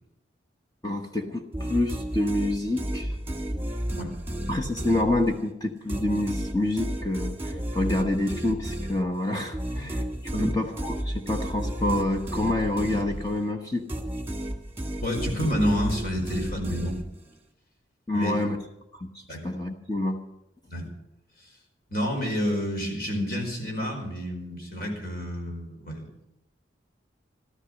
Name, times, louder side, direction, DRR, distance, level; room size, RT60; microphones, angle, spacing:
voice 1, 0.8-3.2 4.5-10.0 10.4-13.9 18.1-18.6 18.9-19.1 19.4-20.2, left 1 dB, 20° left, 3 dB, 1.1 m, -27 dB
sound 1, 1.5-5.5 5.9-13.5 13.9-17.4, right 1 dB, 10° right, 1.9 m, -32 dB
voice 2, 15.0-17.0 18.1-18.3 19.3-19.5 20.7-20.9 21.9-26.1, equal, 50° left, 1 dB, 4.8 m, -29 dB
14.5 x 13.0 x 6.4 m, 0.86 s
head